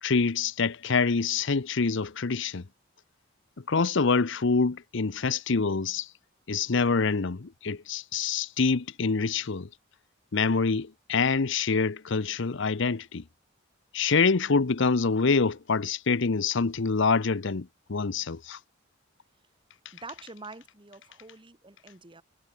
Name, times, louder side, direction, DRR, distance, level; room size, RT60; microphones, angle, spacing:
voice 1, 0.0-2.7 3.6-6.1 6.5-9.7 10.3-13.2 13.9-18.6, left 4 dB, 65° left, 0.8 m, -26 dB
voice 2, 19.9-22.2, right 3 dB, 25° right, 2.0 m, -46 dB
head